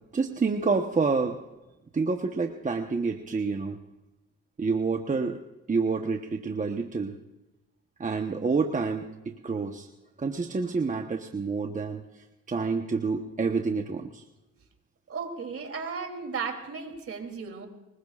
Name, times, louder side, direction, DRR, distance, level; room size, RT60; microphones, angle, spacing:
voice 1, 0.1-1.4 1.9-3.8 4.6-5.4 5.7-7.1 8.0-9.9 10.2-14.2, right 4 dB, 25° right, 4 dB, 1.1 m, -28 dB
voice 2, 15.1-17.7, right 5 dB, 50° right, 4 dB, 3.1 m, -35 dB
24.0 x 21.0 x 2.5 m, 1.0 s
cardioid pair, 90°, 30 cm